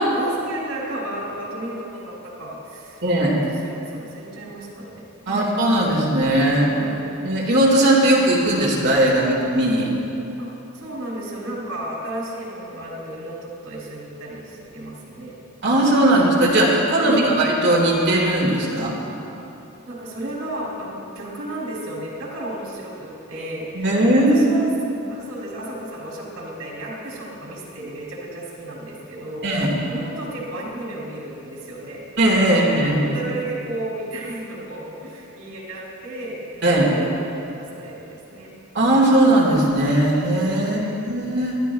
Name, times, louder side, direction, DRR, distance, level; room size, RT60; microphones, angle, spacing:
voice 1, 0.0-3.0 3.6-5.5 6.7-7.0 10.4-10.5 10.7-15.4 17.0-17.2 19.9-23.9 24.2-24.7 25.1-32.0 32.4-38.5 40.6-40.9, right 1 dB, 85° right, -4 dB, 3.2 m, -33 dB
voice 2, 3.0-3.4 5.3-6.7 7.2-9.9 15.6-19.0 23.7-24.6 29.4-29.8 32.2-33.1 36.6-36.9 38.7-40.8 41.1-41.6, right 1 dB, 55° right, -3 dB, 2.0 m, -18 dB
22.5 x 12.0 x 2.3 m, 2.9 s
head